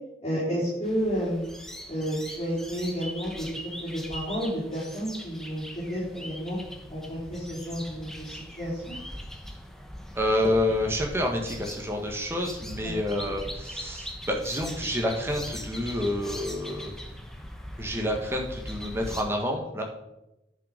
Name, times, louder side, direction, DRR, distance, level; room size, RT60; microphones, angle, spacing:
voice 1, 0.2-1.5 1.9-6.6 6.9-9.0 12.8-13.2, equal, 30° left, -11 dB, 4.3 m, -31 dB
sound 1, 0.8-19.2, equal, 5° left, 0.9 m, -41 dB
voice 2, 10.1-16.9 17.8-19.8, left 1 dB, 15° right, 1 dB, 1.5 m, -28 dB
10.0 x 6.4 x 5.1 m, 0.91 s
head